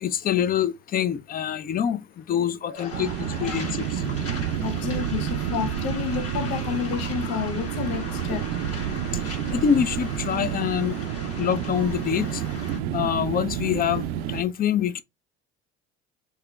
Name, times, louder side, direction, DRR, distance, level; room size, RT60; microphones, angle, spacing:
voice 1, 0.0-2.0 2.3-3.1 3.4-3.8 9.5-10.9 11.4-12.4 12.9-15.0, left 9 dB, 30° left, 0.4 m, -25 dB
voice 2, 2.7-3.7 4.6-8.5 11.2-11.3, left 8 dB, 70° left, 0.7 m, -31 dB
Waves surf, 2.7-12.8, left 3 dB, 45° left, 1.7 m, -39 dB
sound 1, 2.9-14.4, right 10 dB, 65° right, 0.5 m, -29 dB
4.7 x 2.9 x 2.2 m
hypercardioid pair, 60°, 33 cm